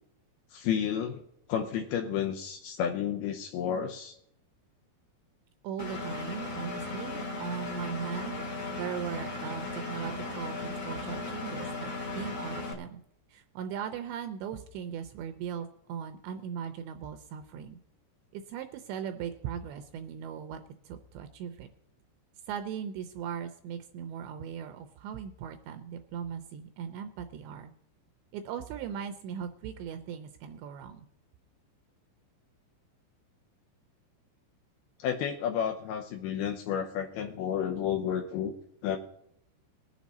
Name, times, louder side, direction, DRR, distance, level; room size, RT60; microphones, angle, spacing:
voice 1, 0.5-1.2 1.5-4.2 35.0-38.5 38.8-39.0, left 8 dB, 85° left, 3 dB, 2.2 m, -31 dB
voice 2, 5.6-8.5 8.8-13.0 13.3-17.8 18.3-20.6 20.9-21.7 22.5-27.7 28.3-31.1, right 8 dB, 80° right, 7 dB, 2.7 m, -39 dB
Engine, 5.8-12.7, left 3 dB, 60° left, 1.3 m, -36 dB
20.5 x 7.2 x 4.1 m, 0.72 s
omnidirectional pair, 5.5 m